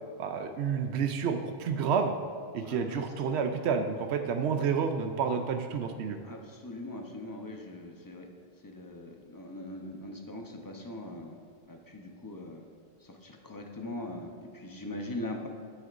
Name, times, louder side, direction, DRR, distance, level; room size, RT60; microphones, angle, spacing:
voice 1, 0.2-2.1 2.5-6.2, right 6 dB, 85° right, 6 dB, 0.9 m, -29 dB
voice 2, 2.6-3.1 6.2-8.3 8.6-11.4 11.7-12.7 13.0-15.5, left 1 dB, 20° left, 2 dB, 0.7 m, -41 dB
9.8 x 7.7 x 2.5 m, 2.3 s
omnidirectional pair, 1.1 m